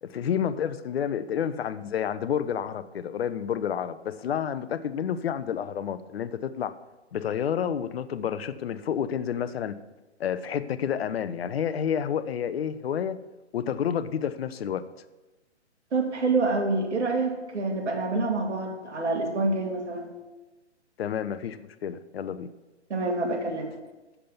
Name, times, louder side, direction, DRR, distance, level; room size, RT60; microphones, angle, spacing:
voice 1, 0.0-6.7 7.1-9.8 10.2-13.2 13.5-14.8 21.0-22.5, left 8 dB, 60° left, 12 dB, 0.7 m, -29 dB
voice 2, 15.9-20.1 22.9-23.7, right 3 dB, 75° right, 2 dB, 2.2 m, -27 dB
7.5 x 6.9 x 7.0 m, 1.1 s
hypercardioid pair, 145°, 35 cm